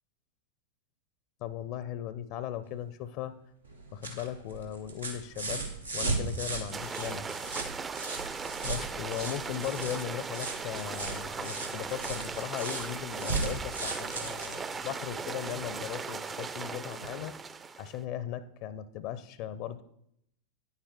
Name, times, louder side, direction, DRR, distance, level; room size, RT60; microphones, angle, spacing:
voice 1, 1.4-3.3 3.9-5.7 5.9-7.3 8.6-17.3 17.8-19.8, left 11 dB, 45° left, 15 dB, 0.4 m, -38 dB
sound 1, 3.6-15.7 17.0-17.1, right 3 dB, 85° right, 1.7 m, -37 dB
sound 2, 6.7-18.0, right 5 dB, 20° right, 0.4 m, -38 dB
9.8 x 8.1 x 3.6 m, 0.74 s
figure-of-eight pair, 90°, 0 cm